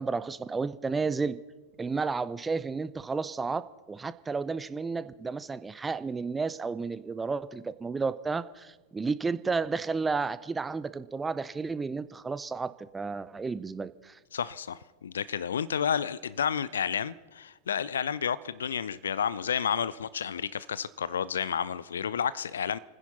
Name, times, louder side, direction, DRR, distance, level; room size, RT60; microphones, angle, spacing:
voice 1, 0.0-1.4 1.8-14.2, right 4 dB, 15° right, 0.5 m, -32 dB
voice 2, 14.3-22.8, left 8 dB, 65° left, 0.4 m, -31 dB
30.0 x 10.0 x 4.2 m
figure-of-eight pair, 90°, 0 cm